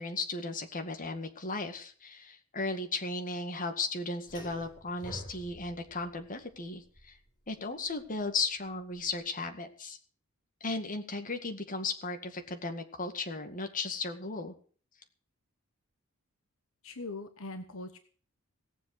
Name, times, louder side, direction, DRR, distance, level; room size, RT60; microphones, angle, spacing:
voice 1, 0.0-7.2 7.5-10.0 10.6-14.5, left 3 dB, 40° left, 5 dB, 2.1 m, -36 dB
sound 1, 4.3-9.2, left 1 dB, 20° left, 4.2 m, -49 dB
voice 2, 16.8-18.0, left 2 dB, 65° left, 8 dB, 1.1 m, -41 dB
17.5 x 7.7 x 7.9 m, 0.43 s
head